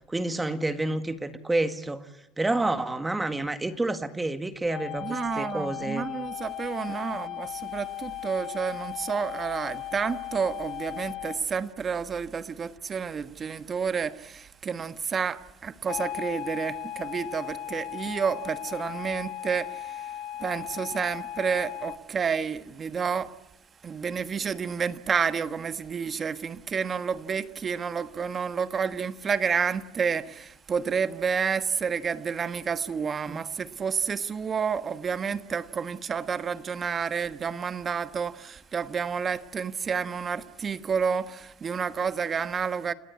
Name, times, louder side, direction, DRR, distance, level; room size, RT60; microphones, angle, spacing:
voice 1, 0.1-2.1 2.4-6.1 6.9-7.0 33.3-33.4, right 2 dB, 10° right, 1.9 m, -29 dB
sound 1, 4.7-11.4 15.9-22.0, left 12 dB, 60° left, 1.9 m, -37 dB
voice 2, 5.0-20.1 20.4-23.3 23.8-42.9, right 6 dB, 30° right, 1.5 m, -30 dB
30.0 x 18.5 x 9.7 m
supercardioid pair, 110°, 0 cm